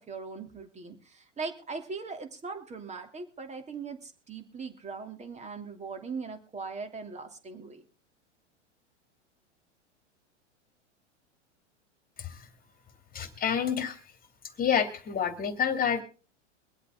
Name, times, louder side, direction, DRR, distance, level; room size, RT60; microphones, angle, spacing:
voice 1, 0.0-7.8, right 4 dB, 20° right, 6 dB, 2.9 m, -40 dB
voice 2, 13.1-14.0 14.6-16.0, left 7 dB, 25° left, 8 dB, 2.7 m, -28 dB
24.5 x 8.3 x 3.7 m, 0.36 s
hypercardioid pair, 105°, 36 cm